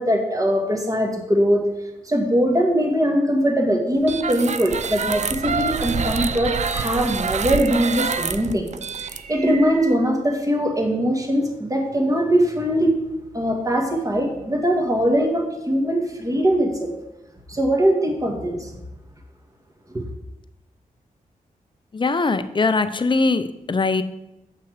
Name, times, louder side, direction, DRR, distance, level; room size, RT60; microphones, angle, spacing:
voice 1, 0.0-1.6 2.0-8.7 9.0-13.0 13.3-17.0 17.5-18.7 19.9-20.0, equal, 20° right, 2 dB, 1.6 m, -21 dB
sound 1, 4.0-9.9, right 5 dB, 50° right, 0.5 m, -27 dB
voice 2, 21.9-24.0, left 3 dB, 35° left, 11 dB, 0.6 m, -21 dB
7.8 x 5.7 x 4.9 m, 0.93 s
cardioid pair, 65°, 15 cm